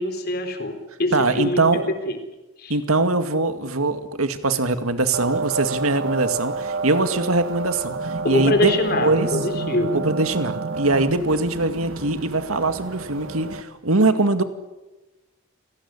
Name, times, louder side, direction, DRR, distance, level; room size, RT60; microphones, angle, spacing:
voice 1, 0.0-1.6 2.1-2.2 2.6-2.8 8.2-10.1, left 1 dB, 45° left, 7 dB, 3.9 m, -24 dB
voice 2, 1.1-1.9 2.7-9.3 9.9-14.4, right 2 dB, 85° right, 9 dB, 2.2 m, -22 dB
sound 1, 5.1-13.6, right 3 dB, 70° right, 1.6 m, -29 dB
28.5 x 18.0 x 9.9 m, 1.1 s
head